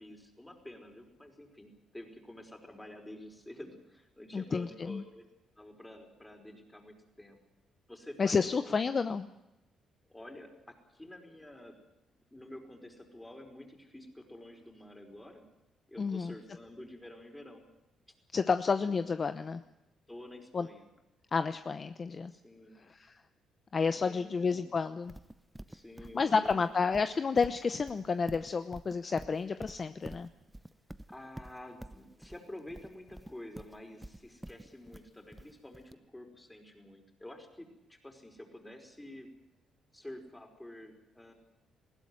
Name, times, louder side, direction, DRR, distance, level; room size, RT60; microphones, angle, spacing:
voice 1, 0.0-5.3 5.6-7.4 7.9-8.8 10.1-11.8 12.3-15.4 15.9-17.7 18.1-18.2 18.8-18.9 20.1-20.8 22.3-22.8 23.7-24.7 25.7-27.0 31.1-39.3 39.9-41.3, left 1 dB, 10° left, 4 dB, 5.0 m, -49 dB
voice 2, 4.3-5.0 8.2-9.3 16.0-16.3 18.3-19.6 20.5-20.7 21.3-22.3 22.9-23.2 23.7-25.1 26.1-30.3, left 5 dB, 40° left, 10 dB, 0.8 m, -30 dB
Livestock farm animals working animals, 25.1-35.9, right 1 dB, 5° right, 0.8 m, -48 dB
20.0 x 16.0 x 9.8 m, 0.94 s
cardioid pair, 90°, 0 cm